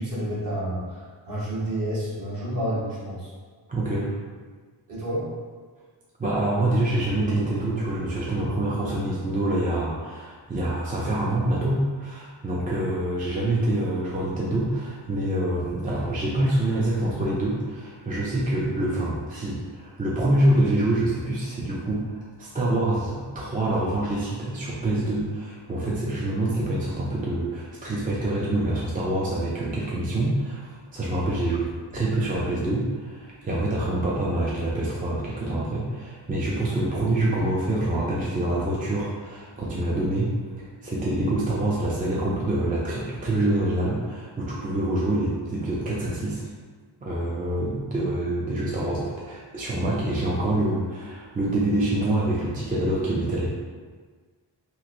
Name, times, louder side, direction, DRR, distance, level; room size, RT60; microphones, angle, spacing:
voice 1, 0.0-3.3 4.9-5.3 11.3-11.5, right 1 dB, 45° right, -8 dB, 1.2 m, -30 dB
voice 2, 3.7-4.1 6.2-40.3 40.8-46.4 47.0-53.5, right 1 dB, 20° right, -6 dB, 0.4 m, -26 dB
3.0 x 2.9 x 2.5 m, 1.5 s
wide cardioid pair, 115°, 45 cm